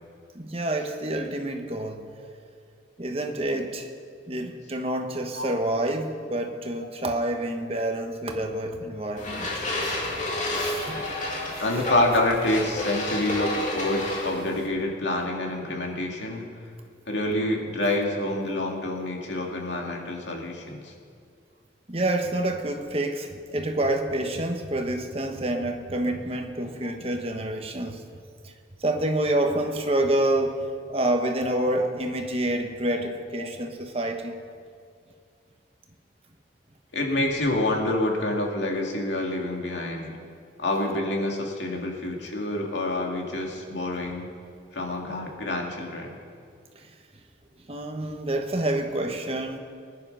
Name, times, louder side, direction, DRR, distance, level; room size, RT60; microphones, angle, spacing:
voice 1, 0.3-2.1 3.0-3.9 4.3-9.9 10.5-11.1 11.5-11.6 21.9-28.0 28.4-28.5 28.8-34.3 46.8-46.9 47.7-49.6, right 1 dB, 30° right, 4 dB, 1.2 m, -28 dB
sound 1, 9.2-14.7, left 1 dB, 40° left, 2.4 m, -30 dB
voice 2, 11.6-16.4 17.1-20.9 26.8-26.9 31.6-31.7 32.9-33.1 33.4-33.5 36.9-40.1 40.6-44.3 44.7-46.1, left 1 dB, 80° left, 0 dB, 2.4 m, -27 dB
19.5 x 10.5 x 5.5 m, 2.3 s
head